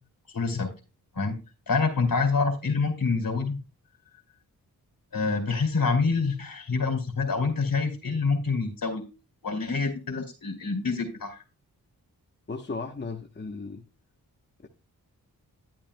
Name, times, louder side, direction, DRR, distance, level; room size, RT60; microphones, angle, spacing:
voice 1, 0.3-0.7 1.1-1.4 1.7-3.6 5.1-9.0 9.4-11.4, left 4 dB, 65° left, 5 dB, 2.5 m, -26 dB
voice 2, 12.5-13.8, left 3 dB, 30° left, 3 dB, 1.0 m, -35 dB
10.5 x 8.8 x 2.2 m, 0.30 s
cardioid pair, 55°, 37 cm